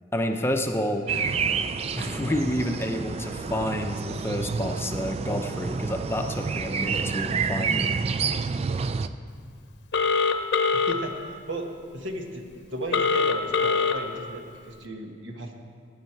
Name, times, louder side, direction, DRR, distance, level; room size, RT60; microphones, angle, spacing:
voice 1, 0.1-1.1 1.9-8.0, equal, 15° left, 4 dB, 0.6 m, -29 dB
sound 1, 1.1-9.1, right 5 dB, 30° right, 0.3 m, -29 dB
Telephone, 9.9-10.9 12.9-13.9, left 5 dB, 60° left, 0.8 m, -22 dB
voice 2, 10.7-11.7 11.9-15.5, right 1 dB, 80° right, 3 dB, 1.5 m, -35 dB
17.0 x 9.4 x 4.5 m, 2.1 s
head